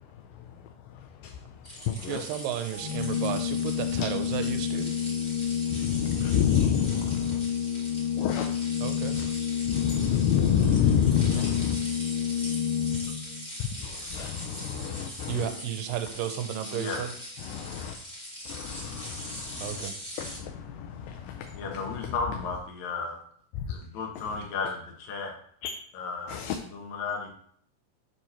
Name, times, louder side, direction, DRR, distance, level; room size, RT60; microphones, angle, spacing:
voice 1, 0.0-2.1 4.0-4.1 5.7-7.4 8.2-8.5 9.1-9.3 9.7-11.8 13.0-13.1 13.6-15.5 17.4-18.0 18.5-19.8 20.2-22.1 23.6-23.7 24.2-24.3 25.6-25.7 26.3-26.6, left 9 dB, 80° left, 4 dB, 2.1 m, -29 dB
sound 1, 1.6-20.4, equal, 30° left, 0.7 m, -41 dB
voice 2, 2.0-4.9 8.8-9.1 15.3-17.1 19.6-20.0, right 10 dB, 90° right, 8 dB, 2.4 m, -33 dB
Organ, 2.7-13.4, left 8 dB, 40° right, 0.5 m, -29 dB
voice 3, 21.6-23.2 23.7-25.3 25.9-27.3, left 4 dB, 65° left, 0 dB, 2.3 m, -34 dB
6.9 x 3.1 x 5.6 m, 0.62 s
omnidirectional pair, 3.8 m